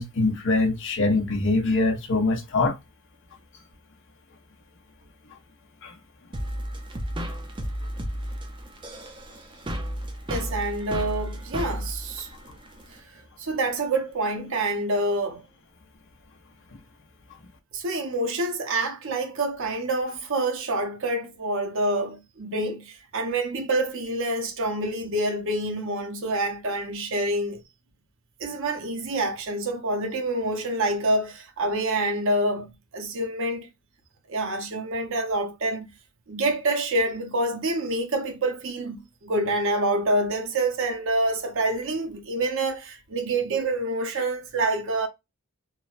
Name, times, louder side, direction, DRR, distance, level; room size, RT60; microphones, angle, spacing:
voice 1, 0.0-2.8 5.8-5.9, left 3 dB, 60° left, 0.7 m, -23 dB
sound 1, 6.3-13.0, equal, 20° right, 0.5 m, -33 dB
voice 2, 10.3-12.3 13.4-15.4 17.7-27.6 28.4-33.7 34.3-35.9 36.3-45.1, right 2 dB, 60° right, 0.7 m, -27 dB
3.1 x 2.1 x 2.4 m
head